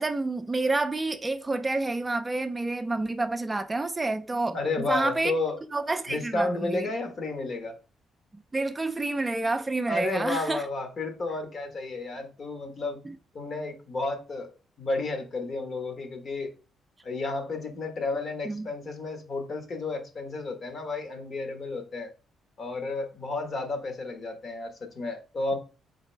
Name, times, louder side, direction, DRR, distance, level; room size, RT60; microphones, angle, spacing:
voice 1, 0.0-4.6 4.8-5.3 5.7-6.9 8.5-10.6 13.1-13.2 18.5-18.7, right 2 dB, 20° right, 0.4 m, -28 dB
voice 2, 4.5-5.6 6.1-7.8 9.9-13.0 13.3-16.5 17.0-22.1 22.6-25.6, left 3 dB, 50° left, 1.3 m, -32 dB
4.1 x 4.1 x 3.2 m
cardioid pair, 90°, 0 cm